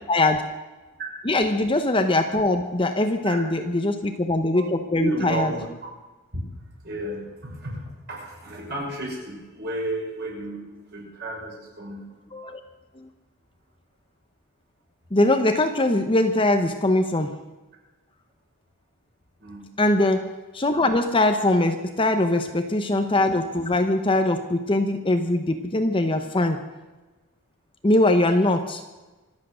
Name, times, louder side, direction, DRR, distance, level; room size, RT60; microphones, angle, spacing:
voice 1, 0.1-0.4 1.3-5.5 12.3-12.6 15.1-17.3 19.8-26.6 27.8-28.8, left 2 dB, 25° left, 7 dB, 0.9 m, -22 dB
voice 2, 5.0-5.9 6.3-6.4 6.8-10.6 10.9-12.2 19.4-19.7, right 2 dB, 45° right, -3 dB, 6.2 m, -32 dB
25.5 x 8.7 x 6.3 m, 1.2 s
head